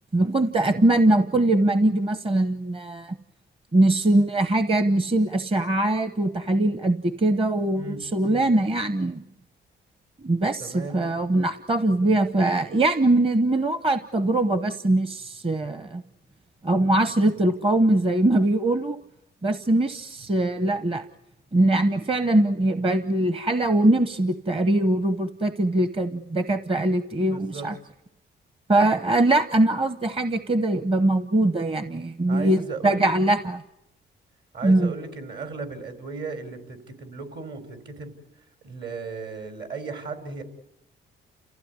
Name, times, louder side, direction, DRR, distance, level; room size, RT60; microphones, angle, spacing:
voice 1, 0.1-3.2 3.7-9.2 10.2-16.0 16.6-19.0 19.4-21.0 21.5-27.7 28.7-33.6 34.6-34.9, right 1 dB, 25° right, 11 dB, 1.0 m, -22 dB
voice 2, 7.7-8.4 10.6-11.0 27.3-27.7 32.3-33.1 34.5-38.1 38.6-40.4, right 4 dB, 60° right, 7 dB, 4.6 m, -36 dB
30.0 x 15.5 x 9.7 m, 0.85 s
cardioid pair, 90°, 20 cm